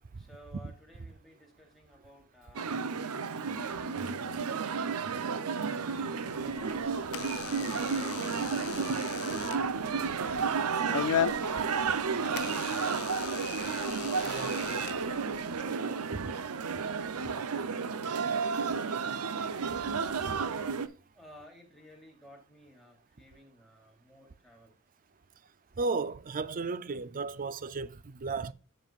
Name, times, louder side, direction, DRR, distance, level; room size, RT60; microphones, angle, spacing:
voice 1, 0.2-2.9 3.2-8.3 8.7-9.1 10.3-13.7 14.4-18.2 18.5-19.4 21.1-24.7, left 1 dB, ahead, 3.3 m, -57 dB
sound 1, 2.5-20.9, right 5 dB, 90° right, 0.7 m, -32 dB
Door / Alarm, 6.4-15.6, left 10 dB, 80° left, 0.3 m, -38 dB
voice 2, 14.2-14.8 16.1-16.3 20.3-20.4 25.8-28.5, right 4 dB, 40° right, 0.5 m, -35 dB
15.0 x 5.4 x 2.4 m
head